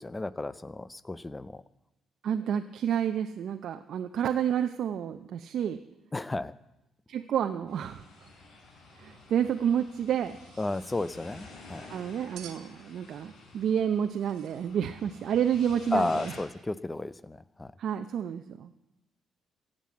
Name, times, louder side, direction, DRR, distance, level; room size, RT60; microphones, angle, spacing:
voice 1, 0.0-1.6 6.1-6.5 10.6-11.9 15.9-17.7, left 2 dB, 20° left, 17 dB, 0.6 m, -33 dB
voice 2, 2.2-5.8 7.1-8.0 9.0-10.4 11.9-16.1 17.8-18.7, right 9 dB, 70° right, 7 dB, 0.7 m, -29 dB
sound 1, 7.7-16.4, left 3 dB, 75° left, 3.8 m, -50 dB
sound 2, 10.2-11.0 12.3-12.7 14.0-14.7, right 9 dB, 85° right, 1.6 m, -50 dB
16.0 x 7.7 x 8.4 m, 0.91 s
cardioid pair, 90°, 0 cm